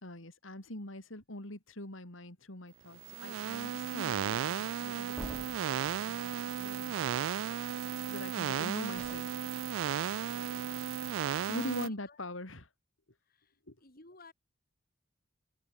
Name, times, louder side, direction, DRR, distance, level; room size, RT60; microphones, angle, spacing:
voice 1, 0.0-5.8 6.1-7.3 8.1-9.3 10.2-10.3 11.5-12.7 13.7-13.8, left 1 dB, 85° left, 4.1 m, -43 dB
sound 1, 3.0-11.9, right 9 dB, 80° right, 0.3 m, -35 dB
sound 2, 5.2-6.0 8.9-9.2, equal, 5° left, 1.1 m, -46 dB
voice 2, 10.1-10.7 11.4-12.2 13.3-14.3, left 3 dB, 50° left, 4.9 m, -58 dB
open air
head